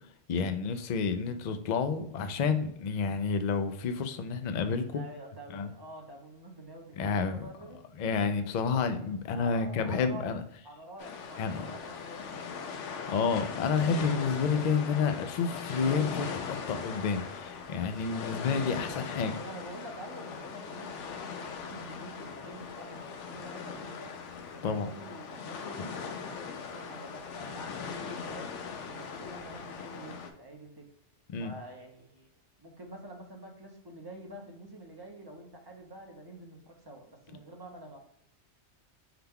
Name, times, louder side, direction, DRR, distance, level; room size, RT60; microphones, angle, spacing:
voice 1, 0.3-5.0 5.5-5.7 7.0-7.5 8.0-10.4 11.4-11.6 13.1-19.3 24.6-24.9 31.3-31.5, left 5 dB, 60° left, 9 dB, 0.4 m, -30 dB
voice 2, 4.8-7.8 9.3-10.4 10.6-12.7 19.3-24.2 24.5-28.5 28.8-30.8 31.4-32.3 32.6-38.0, right 1 dB, 25° right, 1 dB, 0.6 m, -47 dB
sound 1, 11.0-30.3, left 6 dB, 80° left, 0.9 m, -40 dB
5.8 x 2.2 x 3.5 m, 0.75 s
omnidirectional pair, 1.2 m